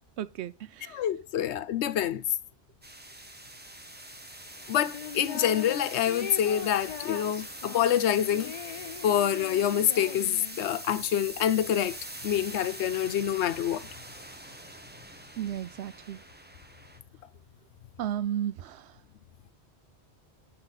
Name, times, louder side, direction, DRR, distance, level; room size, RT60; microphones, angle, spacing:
voice 1, 0.2-1.0 15.4-16.2 18.0-18.9, right 10 dB, 80° right, 0.9 m, -34 dB
voice 2, 0.9-2.2 4.7-8.5 9.0-12.0 12.2-13.9, left 10 dB, 85° left, 0.9 m, -26 dB
sound 1, 2.8-17.0, right 1 dB, 10° right, 0.9 m, -43 dB
sound 2, 4.9-5.8 6.1-10.7, left 8 dB, 55° left, 0.4 m, -40 dB
9.7 x 4.0 x 4.0 m
omnidirectional pair, 1.1 m